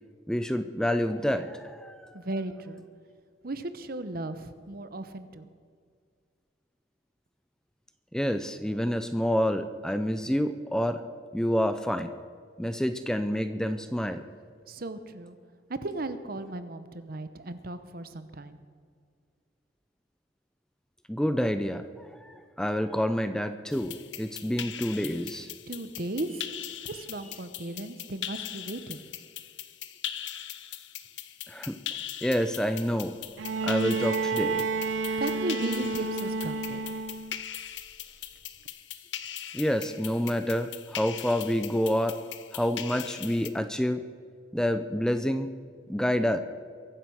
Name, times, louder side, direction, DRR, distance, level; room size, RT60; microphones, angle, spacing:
voice 1, 0.3-2.2 8.1-11.0 11.3-12.1 12.6-14.2 21.1-25.5 31.5-31.8 32.2-33.1 33.6-34.7 35.1-35.2 39.5-42.2 42.5-44.0 44.5-45.5 45.9-46.4, equal, 5° left, 9 dB, 0.5 m, -28 dB
voice 2, 2.1-2.8 3.4-5.5 14.7-15.4 15.7-18.6 25.7-26.4 26.8-29.1 35.2-36.8, right 2 dB, 50° right, 11 dB, 0.9 m, -36 dB
sound 1, 23.7-43.5, left 11 dB, 70° left, 0.8 m, -41 dB
Bowed string instrument, 33.4-37.4 38.7-38.8, right 4 dB, 90° right, 0.7 m, -30 dB
23.0 x 7.8 x 6.4 m, 2.1 s
head